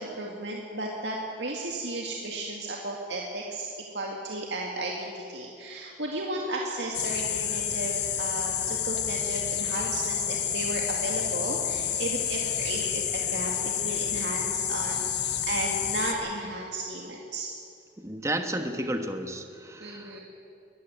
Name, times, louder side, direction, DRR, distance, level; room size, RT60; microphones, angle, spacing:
voice 1, 0.0-3.7 3.9-15.1 15.4-17.5 19.8-20.2, right 2 dB, 65° right, -1 dB, 2.1 m, -34 dB
sound 1, 6.9-16.1, left 9 dB, 65° left, 1.6 m, -29 dB
voice 2, 18.0-20.2, right 1 dB, 15° right, 6 dB, 1.3 m, -32 dB
22.5 x 14.0 x 9.2 m, 2.6 s
head